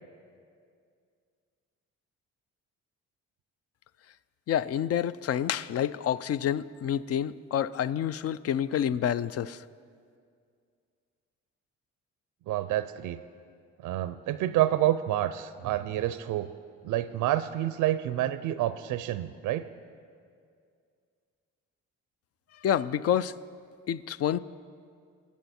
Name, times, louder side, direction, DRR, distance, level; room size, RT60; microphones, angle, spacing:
voice 1, 4.5-9.6 22.6-23.3 23.9-24.4, left 10 dB, 55° left, 17 dB, 0.4 m, -28 dB
voice 2, 12.5-13.2 13.8-16.5 16.8-19.7, right 13 dB, 85° right, 13 dB, 0.5 m, -28 dB
21.5 x 8.2 x 4.3 m, 2.2 s
cardioid pair, 90°, 30 cm